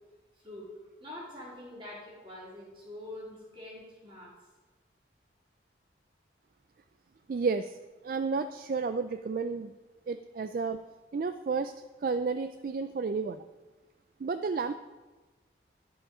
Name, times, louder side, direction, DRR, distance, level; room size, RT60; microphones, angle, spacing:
voice 1, 0.4-4.3, left 1 dB, 30° right, -6 dB, 3.3 m, -45 dB
voice 2, 7.3-7.7 8.0-9.7 10.1-10.8 11.1-11.7 12.0-13.4 14.2-14.7, right 4 dB, 50° right, 10 dB, 0.3 m, -31 dB
11.0 x 6.9 x 5.0 m, 1.2 s
head